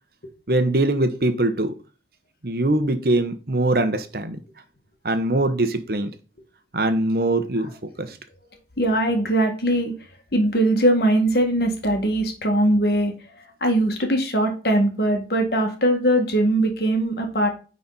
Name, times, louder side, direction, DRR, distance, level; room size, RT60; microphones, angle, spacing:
voice 1, 0.5-1.7 2.4-4.4 5.0-6.1 6.7-7.7 8.0-8.2, right 2 dB, 55° right, 1.0 m, -22 dB
voice 2, 8.8-9.9 10.3-13.1 13.6-17.5, right 1 dB, 60° left, 2.0 m, -21 dB
9.9 x 4.2 x 4.1 m
head